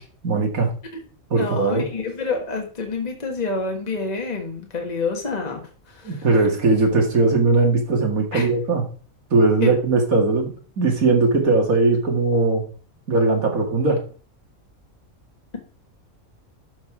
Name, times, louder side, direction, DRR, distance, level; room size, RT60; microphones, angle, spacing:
voice 1, 0.2-0.7 1.3-1.9 6.0-8.9 9.3-12.7 13.1-14.0, right 3 dB, 85° right, 2 dB, 2.4 m, -19 dB
voice 2, 1.4-5.6 5.9-6.2 8.3-8.5 9.6-9.7, left 4 dB, 30° left, 2 dB, 1.6 m, -27 dB
12.0 x 5.2 x 4.9 m, 0.41 s
omnidirectional pair, 1.4 m